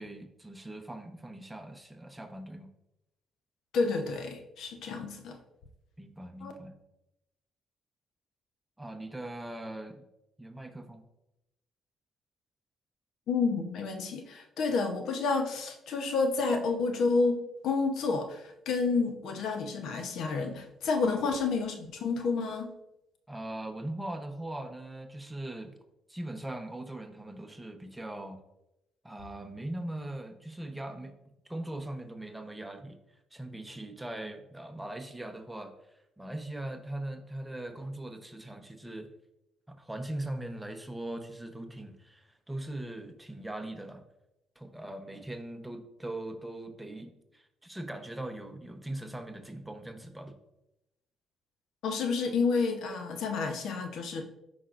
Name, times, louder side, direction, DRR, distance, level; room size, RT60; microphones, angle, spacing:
voice 1, 0.0-2.7 6.0-6.7 8.8-10.1 10.4-11.1 21.0-21.2 23.3-25.7 26.1-28.4 29.0-31.1 31.5-33.0 33.3-35.7 36.2-39.1 39.7-44.0 44.6-50.3, right 1 dB, 10° right, 5 dB, 0.9 m, -40 dB
voice 2, 3.7-5.4 6.4-6.5 13.3-22.7 51.8-54.2, left 4 dB, 75° left, 5 dB, 0.9 m, -30 dB
13.0 x 5.2 x 2.6 m, 0.89 s
cardioid pair, 90°, 0 cm